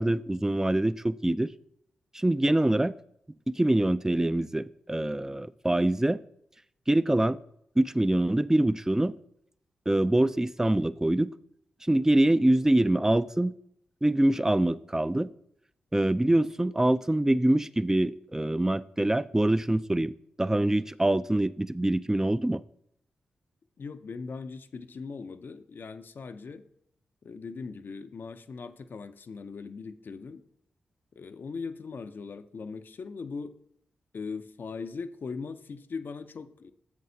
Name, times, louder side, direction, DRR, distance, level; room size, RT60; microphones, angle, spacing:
voice 1, 0.0-1.5 2.1-2.9 3.6-6.2 6.9-7.4 7.8-9.1 9.9-11.3 11.9-13.5 14.0-15.3 15.9-20.1 20.4-22.6, right 1 dB, 15° right, 17 dB, 0.3 m, -24 dB
voice 2, 23.8-26.6 27.2-30.4 31.2-33.5 34.1-36.7, left 4 dB, 60° left, 10 dB, 0.5 m, -39 dB
9.5 x 7.6 x 2.7 m, 0.72 s
supercardioid pair, 40°, 4 cm